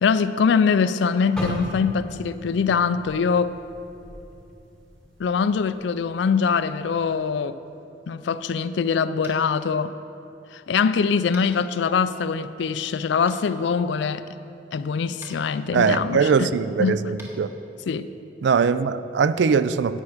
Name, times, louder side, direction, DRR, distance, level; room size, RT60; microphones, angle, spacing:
voice 1, 0.0-3.6 5.2-7.6 8.1-9.9 10.5-14.2 14.7-16.5 16.8-17.0 17.9-18.1, left 6 dB, 65° left, 14 dB, 0.3 m, -23 dB
sound 1, 1.4-5.4 5.7-6.0 6.7-7.0, right 1 dB, 5° left, 1.4 m, -36 dB
Tap, 9.2-9.5 11.3-11.5 13.3-13.4 15.2-15.3 17.1-17.3, right 1 dB, 15° right, 1.3 m, -43 dB
voice 2, 15.7-17.5 18.4-20.0, right 6 dB, 65° right, 14 dB, 0.3 m, -21 dB
10.5 x 8.4 x 5.0 m, 2.8 s
head